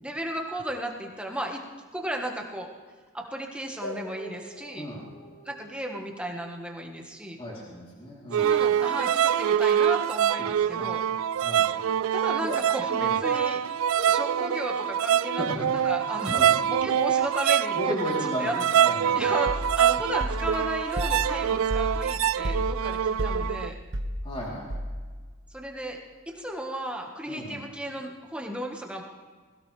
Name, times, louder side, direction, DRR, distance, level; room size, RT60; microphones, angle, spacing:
voice 1, 0.0-1.6 1.9-2.7 3.1-4.8 5.4-7.4 8.4-11.0 12.1-13.6 14.1-17.9 18.4-18.6 18.9-23.8 25.5-26.0 26.3-29.0, right 1 dB, 5° right, 1 dB, 1.6 m, -34 dB
sound 1, 3.8-9.2 11.5-12.9 13.2-13.3 13.9-16.1, left 1 dB, 75° left, 6.3 m, -46 dB
voice 2, 7.4-8.5 10.4-10.9 11.4-11.7 12.4-12.6 13.0-13.2 15.3-15.9 16.3-16.6 17.7-19.4 24.2-24.7 27.3-27.6, equal, 25° left, -5 dB, 3.6 m, -35 dB
sound 2, 8.3-23.7, right 9 dB, 85° right, 0.3 m, -25 dB
sound 3, 19.5-25.3, equal, 65° right, 1.1 m, -33 dB
21.5 x 16.5 x 3.4 m, 1.5 s
head